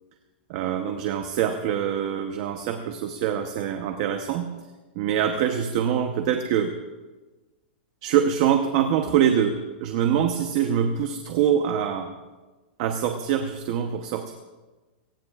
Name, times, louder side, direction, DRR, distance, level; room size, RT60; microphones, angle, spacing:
voice 1, 0.5-4.6 4.9-6.7 8.0-12.1 12.8-14.3, right 9 dB, 30° right, 6 dB, 0.9 m, -24 dB
26.0 x 18.0 x 2.5 m, 1.2 s
supercardioid pair, 180°, 6 cm